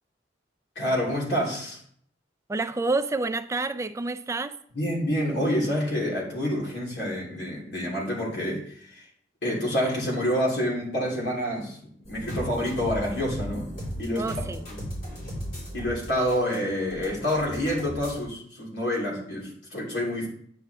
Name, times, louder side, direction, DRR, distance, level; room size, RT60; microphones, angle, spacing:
voice 1, 0.7-1.8 4.7-9.0 9.4-11.8 12.1-13.7 14.0-14.8 15.7-20.3, equal, 90° left, 3.4 m, -28 dB
voice 2, 2.5-4.6 14.2-14.6, right 3 dB, 15° right, 0.3 m, -28 dB
sound 1, 12.0-18.2, equal, 55° left, 4.2 m, -36 dB
9.3 x 7.2 x 3.4 m
head